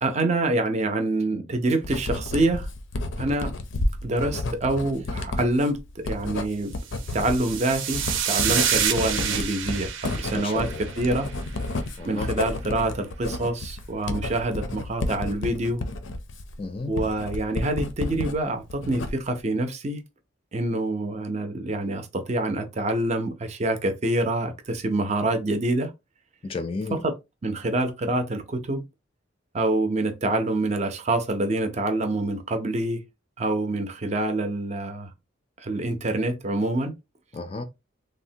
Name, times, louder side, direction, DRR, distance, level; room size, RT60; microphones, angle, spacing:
voice 1, 0.0-2.7 3.2-3.5 4.0-6.7 7.1-10.7 11.0-11.3 12.0-15.8 16.9-20.0 20.5-25.9 27.0-27.1 27.4-28.8 29.5-33.0 33.4-35.1 35.6-36.9, right 2 dB, 35° right, 0.5 m, -26 dB
Writing, 1.8-18.4 18.7-19.4, left 2 dB, 80° left, 0.5 m, -31 dB
sound 1, 6.9-11.4, right 8 dB, 85° right, 0.6 m, -28 dB
voice 2, 10.3-10.8 12.0-12.3 16.6-16.9 26.4-27.0 37.3-37.6, left 3 dB, 30° left, 0.3 m, -32 dB
3.4 x 2.0 x 2.7 m
head